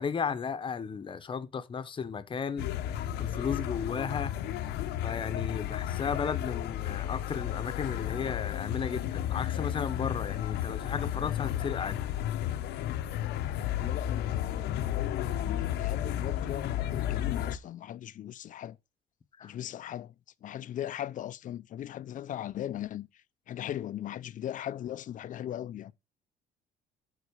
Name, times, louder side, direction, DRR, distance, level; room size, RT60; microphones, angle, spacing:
voice 1, 0.0-2.7 3.2-4.3 5.0-12.0 19.4-19.5, left 6 dB, 30° left, 0.9 m, -34 dB
sound 1, 2.6-17.6, left 11 dB, 80° left, 0.9 m, -33 dB
voice 2, 13.8-18.8 19.4-20.1 20.4-25.9, left 11 dB, 50° left, 0.6 m, -39 dB
9.3 x 4.2 x 6.8 m
cardioid pair, 110°, 17 cm